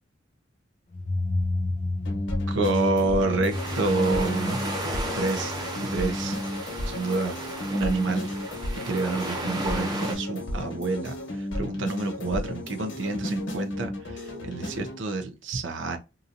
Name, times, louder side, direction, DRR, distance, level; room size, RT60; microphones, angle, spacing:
sound 1, 0.9-7.5, left 2 dB, 40° left, 0.5 m, -32 dB
sound 2, 2.1-15.0, left 1 dB, 75° left, 1.0 m, -33 dB
voice 1, 2.5-4.6 5.1-6.4 6.9-7.4 7.7-8.3 8.7-16.0, right 2 dB, 75° right, 0.6 m, -28 dB
sound 3, 3.5-10.1, right 1 dB, 20° right, 0.9 m, -34 dB
2.9 x 2.5 x 2.5 m
head